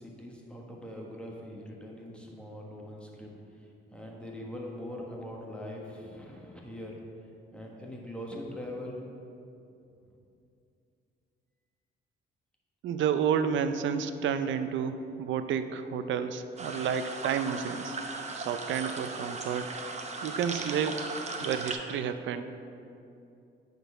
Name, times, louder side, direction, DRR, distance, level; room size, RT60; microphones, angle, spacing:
voice 1, 0.0-3.3 3.9-7.0 7.5-9.1, left 1 dB, 5° left, -2 dB, 1.2 m, -42 dB
voice 2, 12.8-18.0 18.3-19.8 20.2-21.1 21.4-22.4, right 7 dB, 70° right, 10 dB, 0.5 m, -30 dB
sound 1, 16.6-21.7, right 3 dB, 35° right, 0.8 m, -37 dB
9.0 x 4.0 x 5.4 m, 2.6 s
cardioid pair, 90°, 20 cm